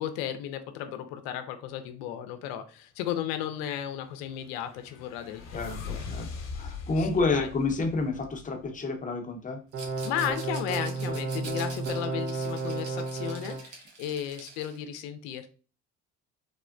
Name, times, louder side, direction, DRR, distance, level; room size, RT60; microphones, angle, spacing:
voice 1, 0.0-6.0 7.0-7.5 10.0-15.5, left 10 dB, 85° left, 9 dB, 0.5 m, -35 dB
sound 1, 3.8-8.8, left 5 dB, 60° left, 0.9 m, -41 dB
voice 2, 6.5-9.6, left 3 dB, 25° left, 4 dB, 0.7 m, -29 dB
sound 2, 9.7-13.6, right 3 dB, 45° right, 0.7 m, -32 dB
Rattle, 9.7-14.8, right 4 dB, 70° right, 0.9 m, -46 dB
3.4 x 2.1 x 2.5 m, 0.37 s
supercardioid pair, 80°, 31 cm